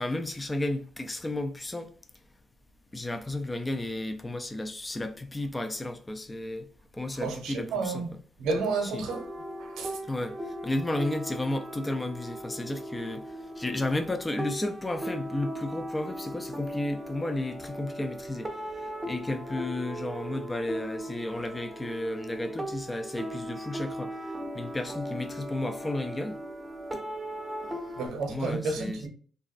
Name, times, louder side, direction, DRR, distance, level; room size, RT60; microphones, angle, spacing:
voice 1, 0.0-1.9 2.9-6.7 6.9-8.0 8.8-9.1 10.1-26.4 26.9-27.0 27.6-28.0 28.3-29.0, left 1 dB, 15° left, 0.3 m, -33 dB
voice 2, 7.1-8.1 8.4-9.2 9.6-10.0 28.0-29.1, right 4 dB, 80° right, 0.7 m, -31 dB
sound 1, 9.1-28.1, right 1 dB, 15° right, 0.6 m, -38 dB
3.3 x 2.1 x 2.4 m
cardioid pair, 90°, 0 cm